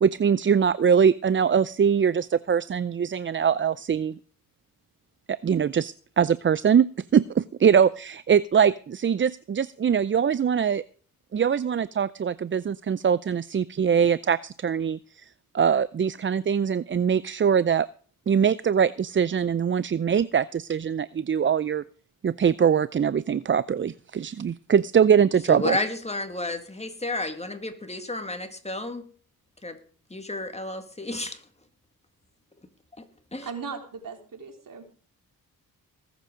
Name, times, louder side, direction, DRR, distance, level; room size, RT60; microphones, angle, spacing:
voice 1, 0.0-4.2 5.3-10.8 11.3-15.2 15.5-17.9 18.3-21.8 22.2-25.8, right 7 dB, 35° right, 0.5 m, -22 dB
voice 2, 25.5-29.1 29.6-29.8 30.1-31.4 33.0-33.1 33.3-33.5, left 2 dB, 15° left, 2.3 m, -31 dB
voice 3, 33.4-34.8, right 5 dB, 60° right, 3.7 m, -37 dB
19.5 x 8.2 x 5.1 m
cardioid pair, 65°, 36 cm